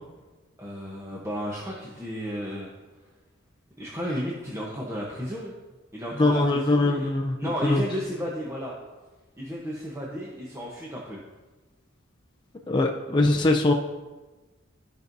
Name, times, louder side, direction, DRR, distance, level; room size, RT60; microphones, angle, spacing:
voice 1, 0.6-2.7 3.8-5.6 5.9-7.1 7.4-8.7 9.4-11.2, equal, 15° right, -4 dB, 0.9 m, -33 dB
voice 2, 6.2-7.8 12.7-13.7, left 2 dB, 20° left, 1 dB, 0.5 m, -22 dB
13.5 x 5.3 x 2.7 m, 1.2 s
head